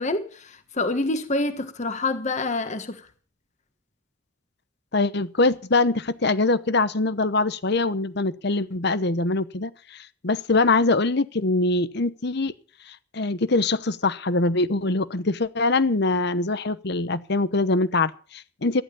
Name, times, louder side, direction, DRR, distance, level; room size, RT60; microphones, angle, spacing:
voice 1, 0.0-3.0, left 2 dB, 40° left, 1.4 m, -27 dB
voice 2, 4.9-12.5 13.1-18.8, left 3 dB, 60° left, 1.0 m, -23 dB
14.0 x 11.0 x 7.0 m
head